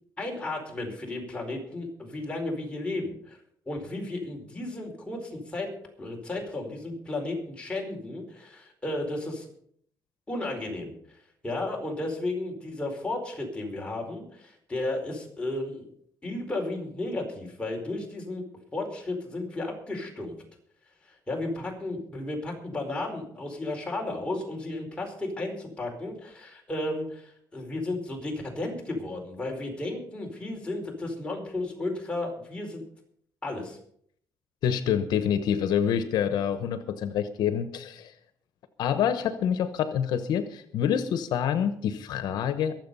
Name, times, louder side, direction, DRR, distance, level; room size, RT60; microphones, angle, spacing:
voice 1, 0.2-3.4 3.7-5.7 6.0-9.5 10.3-10.9 11.4-15.8 16.2-18.4 18.7-20.3 21.1-32.8 33.4-33.8, left 2 dB, 15° left, 0 dB, 4.7 m, -33 dB
voice 2, 34.6-38.1 38.8-42.8, left 8 dB, 85° left, 11 dB, 1.0 m, -27 dB
23.0 x 7.7 x 5.5 m, 0.66 s
cardioid pair, 105°, 7 cm